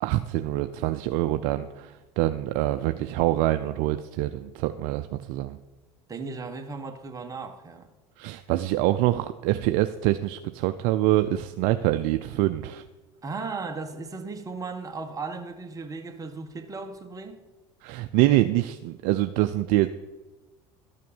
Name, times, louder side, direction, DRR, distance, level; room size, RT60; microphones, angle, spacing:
voice 1, 0.0-5.6 8.2-12.8 17.8-19.9, right 15 dB, 70° right, 0.5 m, -25 dB
voice 2, 6.1-7.9 13.2-17.4, right 4 dB, 25° right, 1.5 m, -36 dB
12.5 x 6.5 x 7.1 m
supercardioid pair, 90°, 14 cm